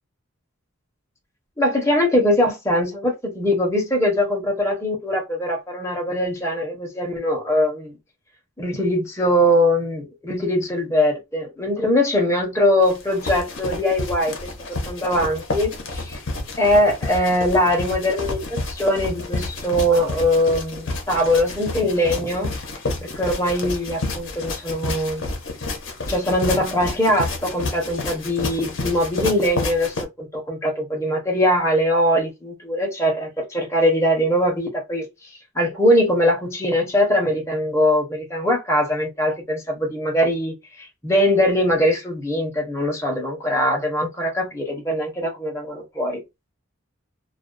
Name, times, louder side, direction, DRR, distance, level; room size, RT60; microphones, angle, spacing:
voice 1, 1.6-8.0 8.6-14.5 14.9-16.2 16.6-22.5 23.0-25.3 26.1-35.1 35.5-46.2, equal, 15° left, 0.8 m, -21 dB
sound 1, 12.8-30.1, left 2 dB, 55° left, 0.7 m, -30 dB
2.3 x 2.3 x 2.5 m
head